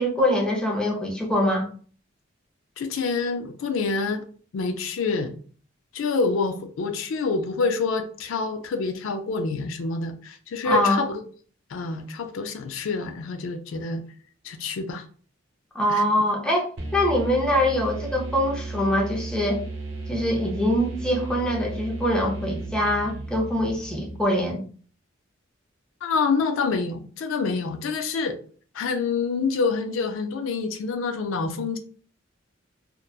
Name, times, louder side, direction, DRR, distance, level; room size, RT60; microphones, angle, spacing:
voice 1, 0.0-1.7 10.6-11.0 15.7-19.6 20.1-24.6, left 1 dB, 5° left, 0.4 m, -23 dB
voice 2, 2.8-4.2 4.5-5.3 5.9-11.2 11.7-14.0 14.4-15.0 15.9-16.0 26.0-28.4 28.7-31.8, left 4 dB, 75° left, 0.4 m, -27 dB
sound 1, 16.8-24.5, right 3 dB, 75° right, 0.8 m, -34 dB
2.8 x 2.1 x 2.3 m
head